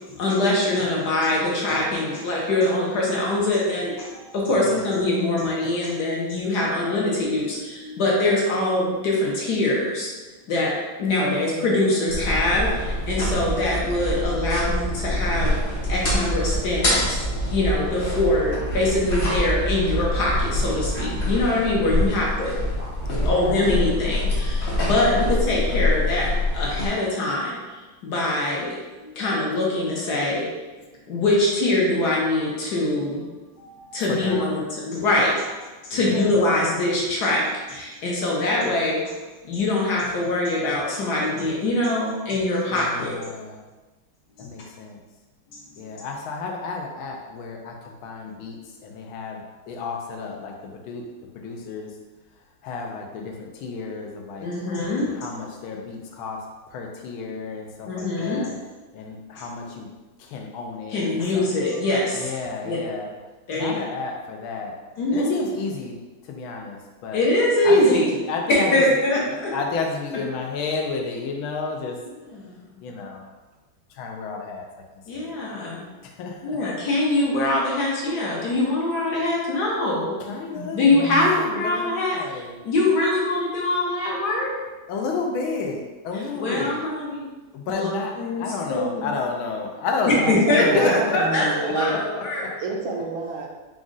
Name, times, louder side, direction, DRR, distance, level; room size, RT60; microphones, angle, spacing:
voice 1, 0.1-10.1 10.5-10.7 11.0-15.6 15.9-17.2 17.5-22.7 23.2-26.3 26.5-27.6 28.0-28.7 29.0-30.5 31.1-33.2 33.6-39.1 39.4-43.2 44.4-44.5 45.5-45.6 54.4-55.2 57.9-58.7 59.4-59.5 60.9-62.3 62.6-62.8 63.5-63.8 65.0-65.4 67.1-68.2 68.5-69.5 72.3-72.8 75.1-75.8 76.4-80.1 80.7-84.5 86.3-87.2 87.7-87.9 88.2-89.1 90.0-92.5, left 2 dB, 60° left, -4 dB, 1.3 m, -23 dB
voice 2, 11.3-11.8 12.2-12.5 23.0-23.7 24.8-25.3 34.1-34.6 35.9-36.4 42.7-43.6 44.4-45.0 45.8-51.1 51.3-51.9 52.6-54.5 55.1-58.5 58.9-59.9 60.2-61.4 62.1-63.1 63.6-64.8 65.1-66.0 66.2-67.2 67.6-68.8 69.5-72.0 72.8-73.3 73.9-74.7 75.1-75.4 76.0-76.6 80.2-82.6 84.9-86.8 87.5-92.5, left 4 dB, 85° left, 1 dB, 1.4 m, -31 dB
sound 1, 12.1-26.9, left 1 dB, 40° left, 0.8 m, -25 dB
voice 3, 80.5-81.4 90.1-92.0 92.6-93.5, right 3 dB, 80° right, 0 dB, 1.4 m, -29 dB
5.0 x 2.4 x 3.8 m, 1.2 s
omnidirectional pair, 2.2 m